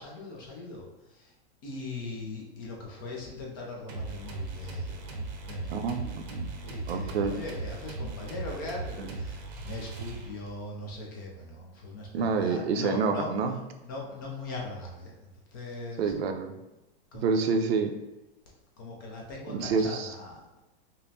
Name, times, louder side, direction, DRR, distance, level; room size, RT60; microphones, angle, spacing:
voice 1, 0.0-1.3 1.6-5.9 6.6-13.3 13.8-16.1 17.1-17.5 18.8-20.6, left 2 dB, 20° left, -2 dB, 0.4 m, -40 dB
sound 1, 3.9-10.6, right 3 dB, 45° right, 0.7 m, -38 dB
voice 2, 5.7-6.5 6.9-7.4 9.0-9.1 12.1-13.5 16.0-16.6 17.2-17.9 19.5-20.1, right 5 dB, 85° right, 6 dB, 0.6 m, -28 dB
5.2 x 2.0 x 2.7 m, 1.0 s
supercardioid pair, 170°, 30 cm